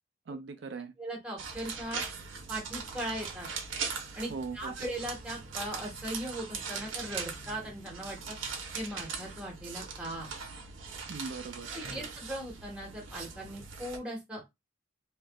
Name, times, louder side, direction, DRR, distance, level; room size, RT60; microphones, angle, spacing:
voice 1, 0.3-0.9 4.3-4.9 11.1-12.1, right 4 dB, 60° right, 0.4 m, -40 dB
voice 2, 1.0-2.0 2.5-3.5 4.2-8.4 8.7-10.3 11.7-14.4, right 1 dB, 5° right, 1.2 m, -39 dB
sound 1, 1.4-14.0, right 5 dB, 85° right, 0.9 m, -40 dB
3.3 x 3.2 x 2.3 m
head